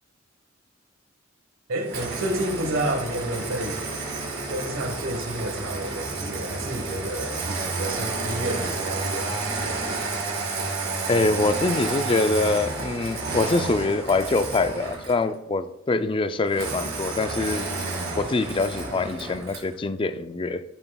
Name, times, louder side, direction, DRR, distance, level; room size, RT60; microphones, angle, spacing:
voice 1, 1.7-3.8 4.5-9.9, right 1 dB, 80° right, 4 dB, 1.4 m, -30 dB
Engine starting, 1.9-15.3 16.5-19.7, right 3 dB, 55° right, 2.4 m, -31 dB
voice 2, 11.1-17.6 18.1-20.6, left 3 dB, 25° left, 11 dB, 0.4 m, -24 dB
13.0 x 5.6 x 2.3 m, 0.80 s
head